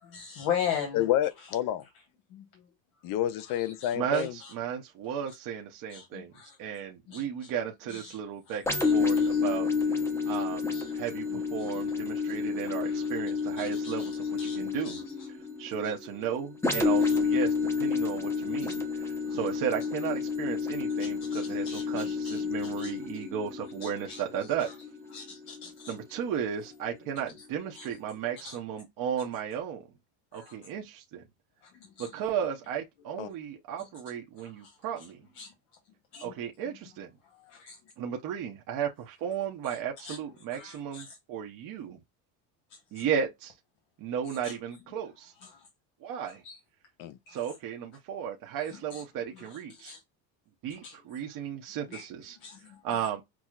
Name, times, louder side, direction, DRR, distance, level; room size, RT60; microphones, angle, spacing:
voice 1, 0.1-1.0 2.3-2.4 3.5-4.5 5.9-6.6 7.1-7.5 7.9-8.2 8.8-8.9 9.2-9.4 10.7-10.9 11.3-11.4 12.8-13.1 13.6-14.1 14.4-15.0 19.2-19.4 21.3-22.4 22.8-22.9 23.8-24.2 24.6-24.7 25.1-25.9 27.7-27.9 28.4-28.5 30.3-30.5 31.8-32.1 34.4-34.7 35.4-35.5 36.1-36.3 37.5-37.8 40.0-40.2 40.5-41.1 43.0-43.1 44.4-44.5 45.4-45.6 46.4-46.5 47.3-47.4 48.9-49.0 49.4-49.5 49.7-50.0 50.8-51.0 51.9-52.1 52.4-52.8, left 8 dB, 80° left, 1.3 m, -39 dB
voice 2, 0.9-1.8 3.0-4.3 33.2-33.3 47.0-47.2, left 12 dB, 50° left, 0.5 m, -29 dB
voice 3, 3.9-6.3 6.6-15.0 15.6-24.7 25.9-29.8 30.3-31.2 32.0-35.2 36.2-37.1 38.0-42.0 42.9-43.5 44.0-45.3 46.0-46.4 47.3-49.9 50.6-52.4 52.8-53.2, right 8 dB, 50° right, 0.7 m, -35 dB
sound 1, 8.7-26.2 26.7-26.9, left 5 dB, 5° left, 0.7 m, -30 dB
6.0 x 2.0 x 2.3 m
cardioid pair, 145°, 42 cm